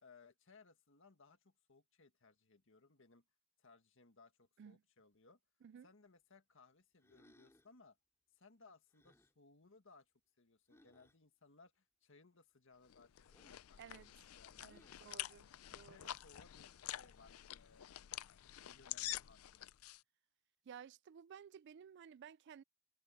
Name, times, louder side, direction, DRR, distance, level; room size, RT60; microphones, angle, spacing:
voice 1, 0.0-3.2 3.6-5.4 5.8-8.0 8.3-10.1 10.4-13.1 13.4-15.4 15.7-17.9 18.6-19.6, left 4 dB, 65° left, 1.8 m, -65 dB
sound 1, 7.0-7.8 8.9-9.4 10.7-11.2 13.3-13.7 14.6-15.1, left 1 dB, 15° left, 3.0 m, -69 dB
sound 2, 12.9-20.0, left 14 dB, 90° left, 0.5 m, -48 dB
voice 2, 13.8-14.1 14.6-16.1 20.7-22.6, right 8 dB, 55° right, 0.3 m, -56 dB
head